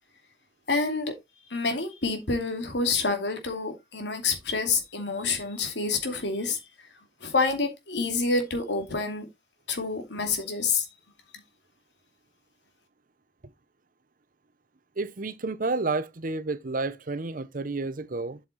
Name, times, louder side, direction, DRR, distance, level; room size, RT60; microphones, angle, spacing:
voice 1, 0.7-1.1 1.5-6.6 7.2-9.2 9.7-10.9, left 4 dB, 80° left, 2.6 m, -28 dB
voice 2, 15.0-18.4, right 3 dB, 50° right, 0.8 m, -30 dB
8.0 x 6.5 x 4.0 m
head